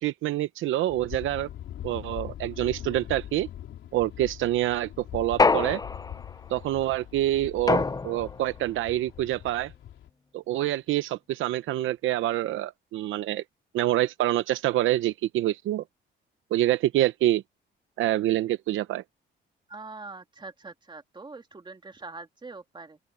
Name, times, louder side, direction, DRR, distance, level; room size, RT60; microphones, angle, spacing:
voice 1, 0.0-1.5 1.8-3.5 3.9-5.8 6.5-9.7 10.3-13.4 13.7-15.8 16.5-17.4 18.0-19.0, right 14 dB, 85° right, 0.8 m, -26 dB
sound 1, 0.9-10.1, left 11 dB, 75° left, 3.7 m, -42 dB
sound 2, 5.4-6.4 7.7-8.5, left 3 dB, 20° left, 0.7 m, -25 dB
voice 2, 19.7-23.0, right 3 dB, 25° right, 2.4 m, -43 dB
open air
cardioid pair, 90°, 20 cm